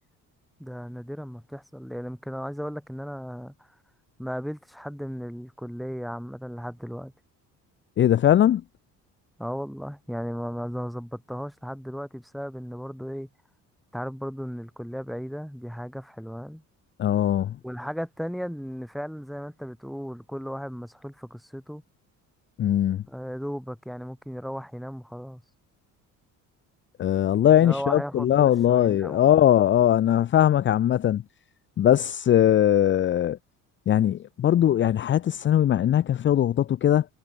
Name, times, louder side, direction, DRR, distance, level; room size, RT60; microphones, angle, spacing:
voice 1, 0.6-3.7 4.2-7.1 9.4-13.3 13.9-16.6 17.6-21.8 23.1-25.4 27.6-29.4, equal, ahead, 3.3 m, -35 dB
voice 2, 8.0-8.6 17.0-17.5 22.6-23.0 27.0-31.2 31.8-33.4 33.9-37.0, left 11 dB, 35° left, 0.8 m, -20 dB
cardioid pair, 165°, 33 cm